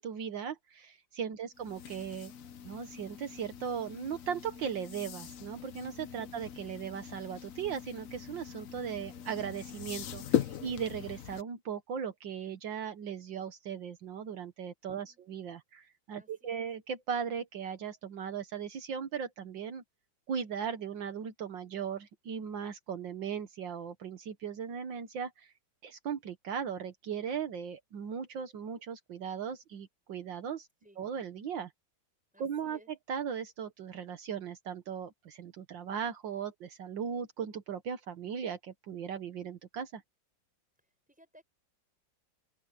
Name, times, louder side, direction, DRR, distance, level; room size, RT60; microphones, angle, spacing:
voice 1, 0.0-2.3 2.6-19.8 20.3-25.5 25.8-30.7 31.0-31.7 32.4-32.8 33.1-40.0, right 7 dB, 75° right, 1.9 m, -38 dB
sound 1, 1.6-11.4, left 9 dB, 55° left, 1.0 m, -39 dB
voice 2, 14.9-15.2 16.1-16.7 30.8-31.0 32.3-32.9 41.1-41.4, equal, 5° right, 7.2 m, -60 dB
open air
omnidirectional pair, 2.1 m